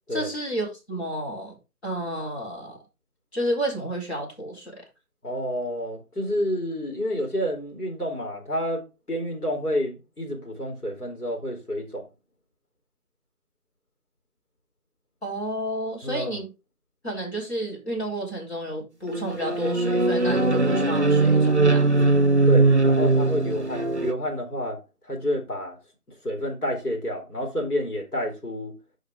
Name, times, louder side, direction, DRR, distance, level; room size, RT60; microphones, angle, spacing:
voice 1, 0.1-1.6 1.8-2.8 3.3-4.8 15.2-16.5 17.0-22.0, equal, 45° left, 4.1 m, -31 dB
voice 2, 5.2-8.8 9.1-12.0 16.0-16.3 22.5-24.8 25.1-25.8 26.2-28.7, equal, 75° left, 3.9 m, -29 dB
sound 1, 19.1-24.1, right 2 dB, 50° right, 0.5 m, -20 dB
8.9 x 5.0 x 3.6 m
figure-of-eight pair, 175°, 46 cm